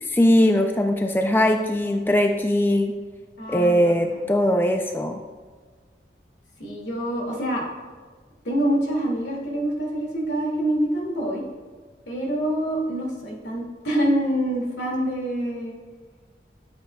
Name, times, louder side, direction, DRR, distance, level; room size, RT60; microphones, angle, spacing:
voice 1, 0.1-3.0 3.5-5.2, equal, 10° left, 5 dB, 0.3 m, -20 dB
voice 2, 3.4-4.0 6.6-7.6 8.4-11.4 12.1-15.7, right 1 dB, 80° left, -2 dB, 2.2 m, -26 dB
11.0 x 7.8 x 2.3 m, 1.5 s
head